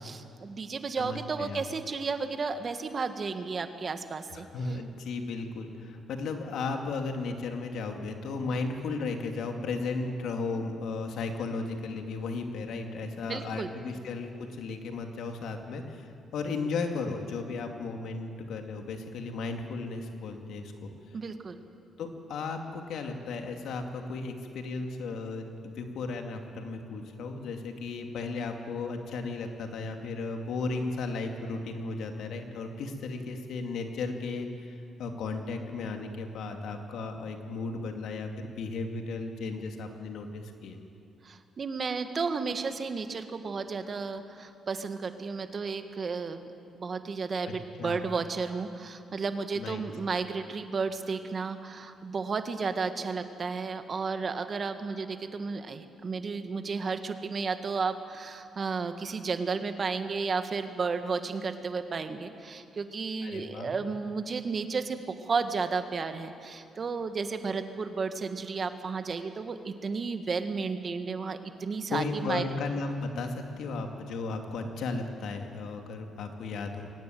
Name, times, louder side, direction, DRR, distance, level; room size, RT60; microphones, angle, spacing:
voice 1, 0.0-4.5 13.3-13.7 21.1-21.6 41.2-46.4 46.7-72.4, right 4 dB, 40° right, 8 dB, 1.7 m, -33 dB
voice 2, 1.0-1.6 4.5-21.2 22.0-40.8 47.4-47.5 47.8-48.1 49.6-49.8 63.2-63.7 71.9-76.9, left 3 dB, 75° left, 4 dB, 2.5 m, -35 dB
22.5 x 18.0 x 9.3 m, 2.5 s
cardioid pair, 85°, 0 cm